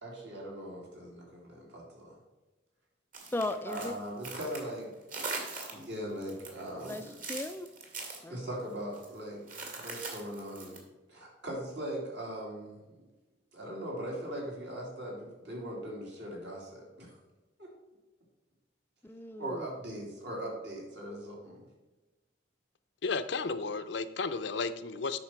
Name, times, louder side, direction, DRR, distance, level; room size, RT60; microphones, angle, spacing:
voice 1, 0.0-2.2 3.6-4.9 5.7-7.1 8.3-9.4 9.8-10.8 11.1-13.0 13.5-17.2 17.6-17.7 19.4-21.6, right 1 dB, 65° right, -3 dB, 3.1 m, -40 dB
sound 1, 3.1-4.8 5.1-5.9 6.2-8.2 8.9-9.1 9.5-10.8, right 3 dB, 45° right, 2.0 m, -41 dB
voice 2, 3.3-4.0 6.8-7.7 8.2-8.4 19.0-19.7, left 2 dB, 10° left, 9 dB, 0.3 m, -36 dB
voice 3, 23.0-25.2, left 4 dB, 65° left, 11 dB, 0.6 m, -33 dB
8.7 x 5.9 x 4.5 m, 1.1 s
head